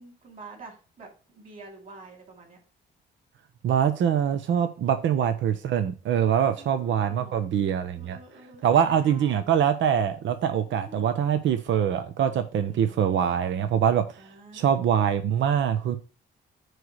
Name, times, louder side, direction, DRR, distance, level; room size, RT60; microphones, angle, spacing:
voice 1, 0.0-2.6 4.9-5.3 6.4-7.6 7.9-9.4 10.7-11.2 12.6-13.0 14.2-15.2, right 3 dB, 45° right, 5.0 m, -48 dB
voice 2, 3.6-8.2 8.6-14.2 14.5-16.0, right 8 dB, 70° right, 0.9 m, -24 dB
9.1 x 3.3 x 6.3 m
cardioid pair, 90°, 20 cm